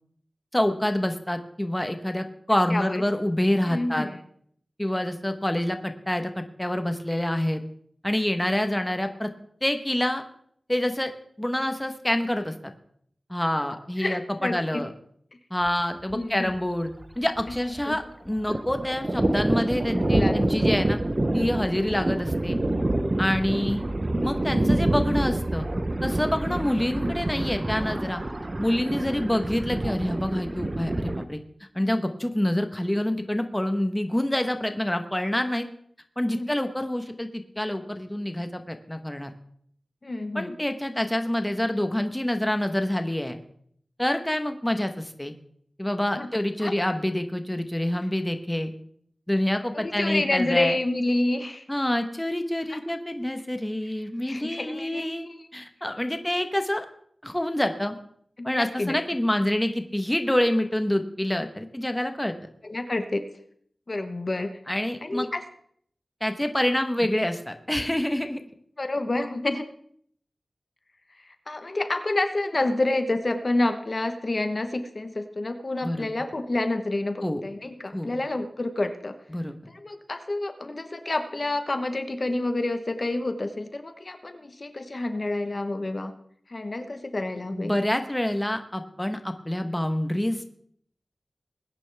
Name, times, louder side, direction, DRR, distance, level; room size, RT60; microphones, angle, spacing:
voice 1, 0.5-4.1 4.8-7.6 8.0-9.3 9.6-10.2 10.7-11.1 11.4-12.5 13.3-14.9 15.5-16.9 17.2-21.0 21.3-22.6 23.2-23.8 24.2-25.7 26.0-28.2 28.6-31.4 31.7-35.7 36.2-39.3 40.3-43.4 44.0-45.3 45.8-48.7 49.3-50.8 51.7-55.3 55.5-56.8 57.2-57.9 58.4-62.3 64.7-65.3 66.2-68.4 75.8-76.1 77.2-77.4 77.9-78.1 79.3-79.5 87.5-90.5, left 1 dB, 10° left, 7 dB, 1.1 m, -27 dB
voice 2, 2.7-3.0 3.6-4.2 14.0-14.8 16.1-16.5 17.8-18.0 20.0-20.4 26.4-26.5 29.0-29.4 36.3-36.5 40.0-40.6 46.2-46.3 46.6-46.7 49.7-51.6 52.7-52.8 54.3-55.4 58.4-59.0 62.6-63.2 63.9-64.5 65.0-65.4 68.8-69.7 71.2-79.2 79.7-86.1 86.5-87.7, left 2 dB, 45° left, 8 dB, 1.1 m, -29 dB
Thunder, 15.7-15.8 16.1-16.2 16.5-18.0 18.3-31.3, right 1 dB, 35° right, 0.8 m, -27 dB
21.0 x 10.0 x 3.5 m, 0.65 s
wide cardioid pair, 75°, 0 cm